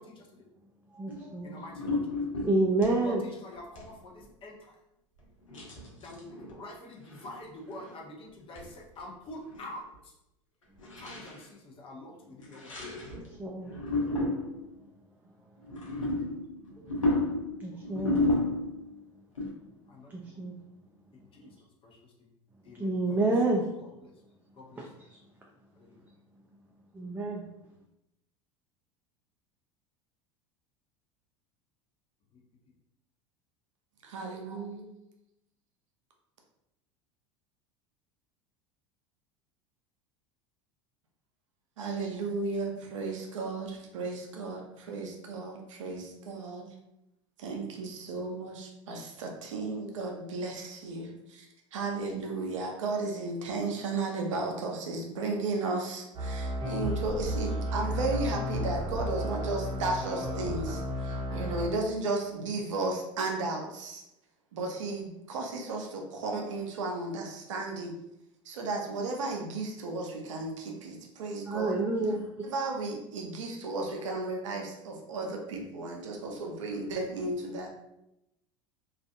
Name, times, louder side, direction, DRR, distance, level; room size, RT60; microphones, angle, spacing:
voice 1, 0.9-1.6 2.4-3.2 13.3-13.8 16.8-16.9 17.6-18.2 20.1-20.5 22.7-23.6 24.8-25.2 26.9-27.4 71.4-72.4, right 2 dB, 10° right, -2 dB, 0.4 m, -29 dB
sound 1, 1.1-1.3 1.7-3.0 3.5-3.9 4.2-4.3 5.5-6.6 7.1-7.4 7.7-8.0 8.6-8.7 9.0-9.1 9.3-9.7 9.9-10.0 10.8-11.4 12.4-13.3 13.6-14.7 15.6-18.9 19.4-19.5, left 2 dB, 90° left, 0.7 m, -32 dB
voice 2, 1.4-2.0 3.0-3.1 3.4-4.1 4.4-4.5 6.0-9.8 11.0-12.7 19.9-20.4 21.4-21.5 22.6-22.9 24.6-24.8, left 1 dB, 35° left, -1 dB, 0.7 m, -45 dB
voice 3, 34.0-34.9 41.8-46.7 47.4-51.5 51.7-64.0 64.5-67.9 68.4-71.8 72.4-77.7, right 3 dB, 75° right, 2 dB, 0.6 m, -34 dB
sound 2, 56.1-61.7, equal, 30° right, 0.8 m, -33 dB
2.4 x 2.3 x 2.5 m, 0.86 s
hypercardioid pair, 80°, 16 cm